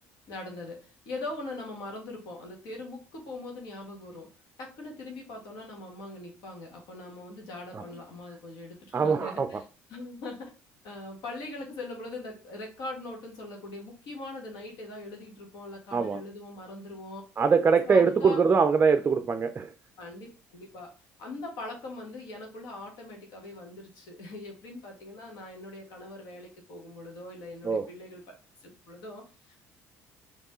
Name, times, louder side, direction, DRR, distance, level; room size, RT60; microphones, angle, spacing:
voice 1, 0.3-4.3 4.6-10.5 10.8-17.2 17.8-18.4 20.0-20.3 20.5-20.9 21.2-28.2 28.6-29.6, left 2 dB, 70° left, 1.5 m, -41 dB
voice 2, 8.9-9.5 15.9-16.2 17.4-19.7 27.6-27.9, right 5 dB, 30° right, 0.4 m, -22 dB
4.3 x 3.0 x 3.0 m
supercardioid pair, 70°, 7 cm